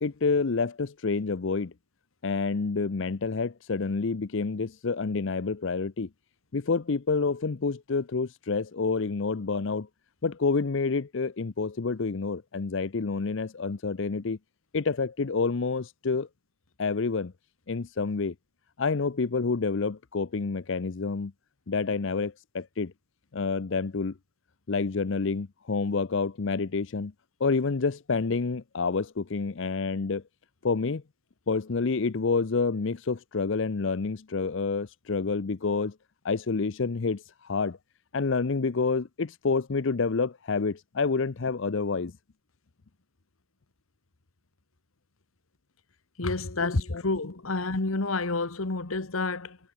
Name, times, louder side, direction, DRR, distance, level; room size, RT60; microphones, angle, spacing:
voice 1, 0.0-1.7 2.2-6.1 6.5-9.9 10.2-14.4 14.7-16.3 16.8-17.3 17.7-18.3 18.8-21.3 21.7-22.9 23.3-24.2 24.7-27.1 27.4-30.2 30.6-31.0 31.5-35.9 36.2-37.8 38.1-42.1 46.6-47.0, left 4 dB, 65° left, 0.6 m, -28 dB
voice 2, 46.2-49.6, left 3 dB, 90° left, 1.5 m, -29 dB
head